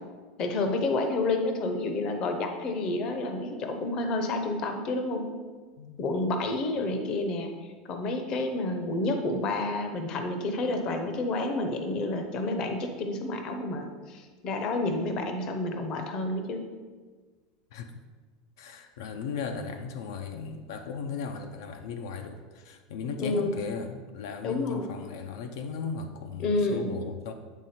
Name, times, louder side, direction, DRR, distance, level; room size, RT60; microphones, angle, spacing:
voice 1, 0.4-5.3 6.0-7.5 7.8-16.6 23.2-23.6 24.4-24.9 26.4-27.0, left 2 dB, 35° left, 5 dB, 0.7 m, -29 dB
voice 2, 18.6-27.3, left 5 dB, 75° left, 6 dB, 0.5 m, -37 dB
8.2 x 3.6 x 4.2 m, 1.4 s
supercardioid pair, 160°, 2 cm